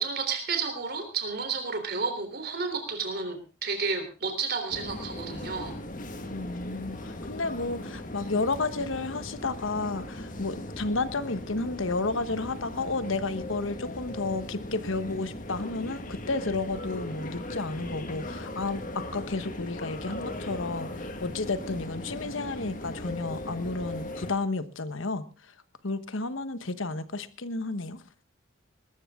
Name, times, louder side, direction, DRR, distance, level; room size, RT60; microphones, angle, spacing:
voice 1, 0.0-5.8, right 5 dB, 50° right, 7 dB, 3.6 m, -31 dB
sound 1, 4.7-24.3, left 1 dB, 40° left, 1.8 m, -38 dB
voice 2, 6.3-25.2 25.8-28.0, left 3 dB, 70° left, 13 dB, 1.2 m, -32 dB
20.5 x 13.5 x 3.7 m, 0.34 s
head